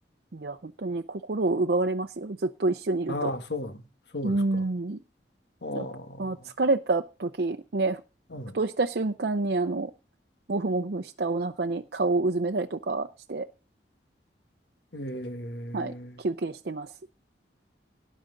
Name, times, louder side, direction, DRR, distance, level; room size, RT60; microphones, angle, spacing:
voice 1, 0.3-3.3 4.2-5.0 5.7-5.8 6.2-8.0 8.5-9.9 10.5-13.5 15.7-16.9, right 3 dB, 60° right, 0.6 m, -28 dB
voice 2, 3.1-3.8 4.1-4.6 5.6-6.5 8.3-8.6 14.9-16.2, left 1 dB, 65° left, 1.6 m, -35 dB
18.0 x 10.0 x 3.9 m
head